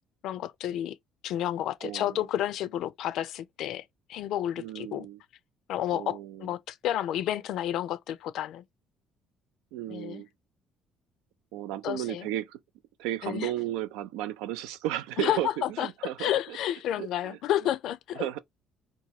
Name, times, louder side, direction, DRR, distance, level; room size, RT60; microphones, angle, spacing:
voice 1, 0.2-1.0 1.2-5.1 5.7-8.6 9.9-10.2 11.8-12.3 13.2-13.5 15.2-18.3, left 12 dB, 70° left, 0.4 m, -31 dB
voice 2, 1.8-2.2 4.6-5.2 5.9-6.5 9.7-10.3 11.5-12.6 13.0-15.5 15.8-16.6 17.0-17.4 18.1-18.4, right 13 dB, 90° right, 0.3 m, -34 dB
2.9 x 2.2 x 2.7 m
cardioid pair, 95°, 0 cm